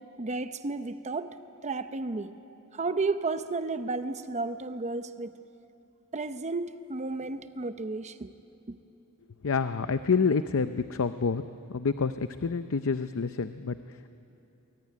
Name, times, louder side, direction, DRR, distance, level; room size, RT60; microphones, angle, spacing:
voice 1, 0.2-1.3 1.6-2.3 2.7-5.3 6.1-8.3 8.7-8.8, right 3 dB, 30° right, 10 dB, 0.7 m, -32 dB
voice 2, 9.4-11.4 11.7-14.1, left 5 dB, 65° left, 11 dB, 0.6 m, -28 dB
25.5 x 22.0 x 9.8 m, 2.8 s
head